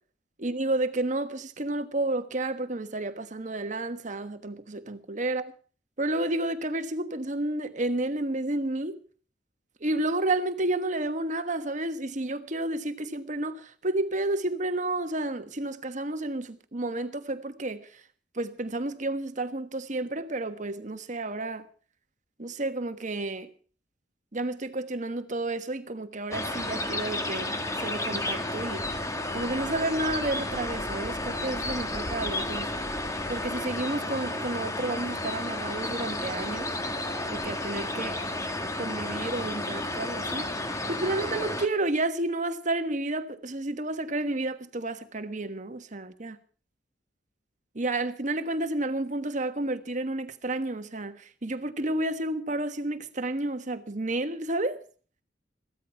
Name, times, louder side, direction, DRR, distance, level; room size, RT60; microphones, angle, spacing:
voice 1, 0.4-5.5 6.0-9.0 9.8-17.9 18.3-21.7 22.4-23.5 24.3-27.5 27.8-28.9 29.3-32.7 33.3-36.7 37.3-38.2 38.8-46.4 47.7-54.8, right 2 dB, 45° right, 1.3 m, -31 dB
sound 1, 26.3-41.7, left 1 dB, 20° left, 1.4 m, -32 dB
15.5 x 13.0 x 5.8 m
head